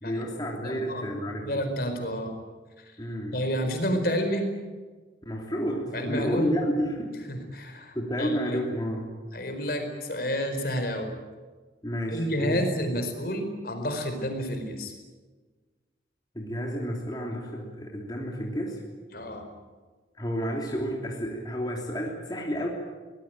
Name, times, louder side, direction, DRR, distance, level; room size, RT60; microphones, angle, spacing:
voice 1, 0.0-1.6 3.0-3.4 5.2-7.2 7.9-9.1 11.8-12.6 16.3-18.8 20.2-22.7, equal, 20° left, -1 dB, 3.2 m, -31 dB
voice 2, 0.6-1.1 1.4-2.3 2.8-2.9 3.3-4.5 5.9-6.6 7.3-8.6 9.3-11.1 12.1-14.9 19.1-19.5, equal, 55° left, 6 dB, 4.6 m, -30 dB
24.5 x 19.5 x 9.1 m, 1.4 s
head